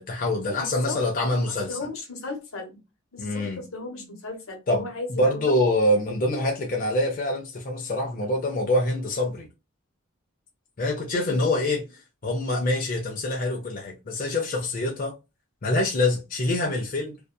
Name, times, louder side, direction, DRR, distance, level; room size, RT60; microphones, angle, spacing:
voice 1, 0.0-1.8 3.2-3.6 4.7-9.5 10.8-11.8 12.2-15.2 15.6-17.2, left 1 dB, 40° left, 0.5 m, -25 dB
voice 2, 0.6-1.0 1.5-2.8 3.1-5.5 11.1-11.8, left 2 dB, 80° left, 1.0 m, -36 dB
2.6 x 2.3 x 2.2 m
head